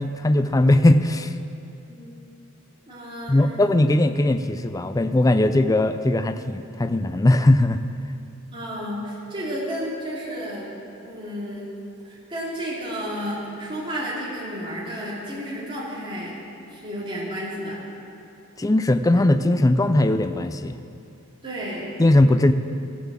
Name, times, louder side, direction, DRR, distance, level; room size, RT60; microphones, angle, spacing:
voice 1, 0.0-1.3 3.3-7.8 18.6-20.8 22.0-22.5, left 1 dB, 15° left, 10 dB, 0.4 m, -19 dB
voice 2, 2.9-3.7 8.5-10.7 11.0-11.7 12.0-16.4 16.7-17.8 21.4-21.9, equal, 25° right, -8 dB, 2.7 m, -32 dB
14.5 x 7.0 x 7.4 m, 2.6 s
head